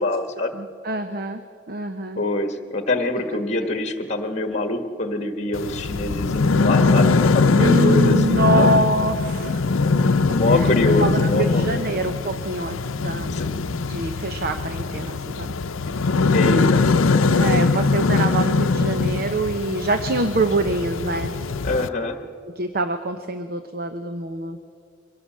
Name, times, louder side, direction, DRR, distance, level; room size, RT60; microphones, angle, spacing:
voice 1, 0.0-0.6 2.2-8.7 10.3-12.0 13.3-13.5 16.3-17.2 21.6-22.2, left 2 dB, 35° left, 7 dB, 1.4 m, -25 dB
voice 2, 0.5-2.2 7.6-9.7 10.2-10.7 11.0-13.4 13.9-15.5 16.0-16.1 17.3-21.3 22.6-24.6, right 1 dB, 50° right, 8 dB, 0.9 m, -25 dB
sound 1, 5.5-21.9, left 3 dB, 85° left, 0.7 m, -21 dB
24.0 x 17.0 x 7.5 m, 2.3 s
head